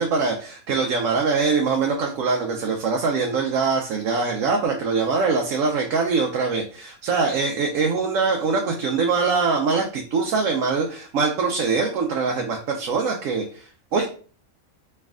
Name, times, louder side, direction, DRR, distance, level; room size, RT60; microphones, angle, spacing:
voice 1, 0.0-14.1, right 4 dB, 75° right, 1 dB, 1.0 m, -23 dB
3.2 x 3.2 x 3.5 m, 0.41 s
omnidirectional pair, 1.4 m